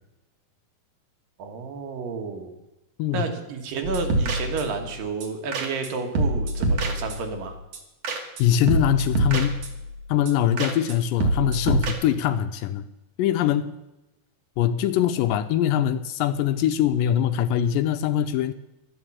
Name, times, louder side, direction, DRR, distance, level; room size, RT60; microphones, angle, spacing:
voice 1, 1.4-2.5 3.1-7.6, right 4 dB, 75° right, 5 dB, 3.1 m, -31 dB
sound 1, 3.8-4.9 5.2-5.3 5.5-5.9 6.2-7.4 7.7-8.4 8.7-9.9 10.3-10.4 10.6-11.0 11.2-11.9, right 2 dB, 55° right, 2.2 m, -25 dB
voice 2, 8.4-9.6 10.1-12.8 13.2-13.8 14.6-18.5, left 10 dB, 80° left, 11 dB, 2.1 m, -22 dB
12.0 x 9.0 x 7.3 m, 0.96 s
omnidirectional pair, 4.1 m